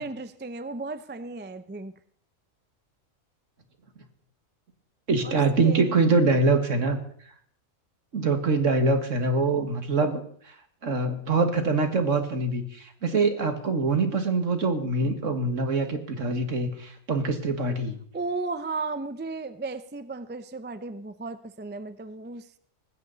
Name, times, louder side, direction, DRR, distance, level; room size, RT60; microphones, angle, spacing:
voice 1, 0.0-1.9 5.2-6.2 18.1-22.5, right 3 dB, 15° right, 12 dB, 0.4 m, -35 dB
voice 2, 5.1-7.0 8.1-10.5 10.8-18.0, right 3 dB, 65° right, 6 dB, 2.1 m, -24 dB
19.0 x 16.0 x 4.1 m, 0.62 s
omnidirectional pair, 1.4 m